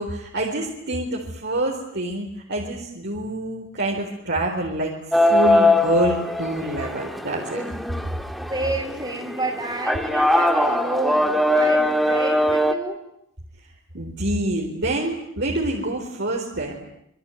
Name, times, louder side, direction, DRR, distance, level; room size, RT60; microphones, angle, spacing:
voice 1, 0.0-4.9 5.2-7.6 13.9-16.8, right 1 dB, 60° right, -1 dB, 4.4 m, -26 dB
sound 1, 5.1-12.7, left 1 dB, ahead, 1.7 m, -21 dB
voice 2, 8.5-13.0, right 2 dB, 25° right, 0 dB, 3.7 m, -29 dB
27.0 x 23.5 x 9.3 m, 0.77 s
head